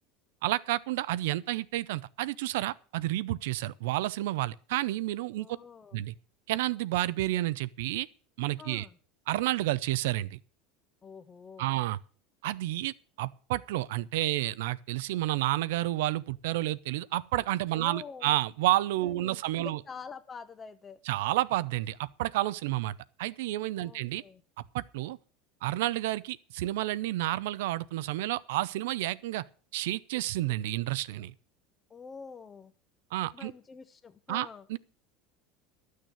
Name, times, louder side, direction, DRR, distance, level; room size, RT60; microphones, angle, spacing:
voice 1, 0.4-5.5 5.9-6.1 6.5-8.1 8.4-8.9 9.3-10.4 11.6-12.0 12.4-19.8 21.1-24.2 24.7-25.2 25.6-29.4 29.7-31.3 33.1-33.5 34.3-34.8, right 16 dB, 80° right, 0.6 m, -30 dB
voice 2, 5.4-6.0 8.6-9.0 11.0-11.7 17.7-18.4 19.0-21.0 23.8-24.4 31.9-32.7 33.3-34.7, left 5 dB, 20° left, 0.8 m, -46 dB
12.0 x 6.5 x 8.2 m
supercardioid pair, 125°, 0 cm